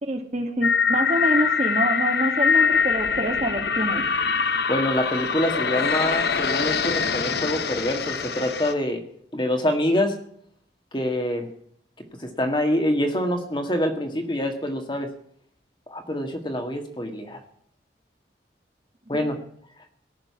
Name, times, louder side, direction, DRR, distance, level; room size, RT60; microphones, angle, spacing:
voice 1, 0.0-4.0 19.1-19.3, right 1 dB, 40° right, 5 dB, 1.8 m, -26 dB
sound 1, 0.6-8.7, left 6 dB, 60° left, 1.0 m, -23 dB
voice 2, 4.7-9.0 9.3-10.2 10.9-11.5 12.2-15.1 15.9-17.4 19.1-19.4, left 1 dB, 25° left, 5 dB, 1.7 m, -25 dB
17.5 x 6.7 x 9.4 m, 0.65 s
head